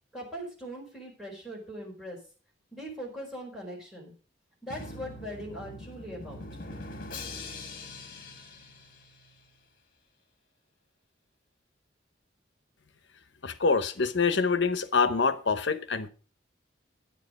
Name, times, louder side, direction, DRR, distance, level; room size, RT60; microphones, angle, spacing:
voice 1, 0.1-2.2 2.7-4.1 4.6-6.4, equal, 5° right, 4.7 m, -40 dB
Drum, 4.7-9.6, left 2 dB, 50° left, 2.2 m, -43 dB
voice 2, 13.4-16.1, left 4 dB, 70° left, 0.9 m, -25 dB
10.5 x 9.7 x 5.2 m
head